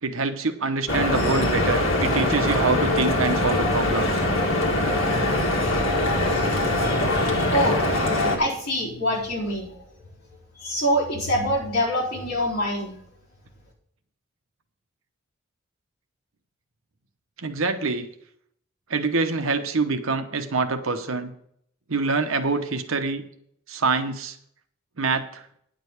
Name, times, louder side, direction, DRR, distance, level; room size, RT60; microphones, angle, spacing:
voice 1, 0.0-4.2 17.4-18.1 18.9-21.3 21.9-23.2 23.7-24.4 25.0-25.4, right 4 dB, 80° right, 8 dB, 1.0 m, -25 dB
Stream / Boat Water vehicle, 0.9-8.4, left 1 dB, 75° left, 2.1 m, -22 dB
voice 2, 6.8-7.8 8.4-9.8 10.5-12.9, equal, 50° left, -6 dB, 4.0 m, -25 dB
9.8 x 5.2 x 7.9 m, 0.68 s
head